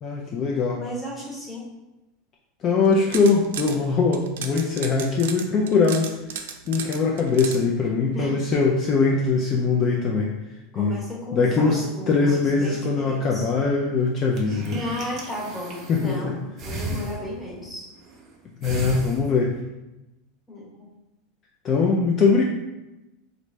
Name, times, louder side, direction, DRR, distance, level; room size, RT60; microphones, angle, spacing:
voice 1, 0.0-0.8 2.6-10.3 10.8-11.0 11.3-14.8 15.9-16.3 16.9-17.0 18.6-19.5 21.6-22.4, left 4 dB, 35° left, -1 dB, 0.4 m, -22 dB
voice 2, 0.8-1.7 8.1-8.4 10.7-13.5 14.7-17.9 20.5-20.9, left 1 dB, 5° left, -5 dB, 1.0 m, -34 dB
sound 1, 2.8-3.8 4.1-7.6, right 7 dB, 90° right, 0.4 m, -34 dB
sound 2, 14.1-16.2 16.6-17.6 18.0-18.3 18.6-19.6, right 2 dB, 35° right, 0.6 m, -35 dB
3.1 x 2.5 x 3.2 m, 0.99 s
supercardioid pair, 140°, 0 cm